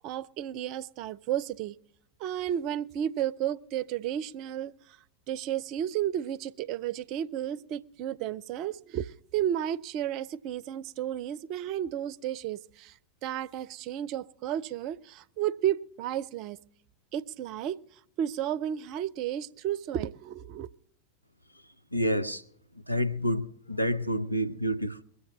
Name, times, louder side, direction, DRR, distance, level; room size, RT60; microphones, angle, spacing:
voice 1, 0.0-1.8 2.2-5.0 5.3-12.9 13.2-16.6 17.1-17.8 18.2-20.7, right 11 dB, 40° right, 0.5 m, -32 dB
voice 2, 21.9-22.4 22.9-25.0, equal, 90° left, 0.8 m, -28 dB
21.5 x 8.2 x 6.2 m
figure-of-eight pair, 90°, 0 cm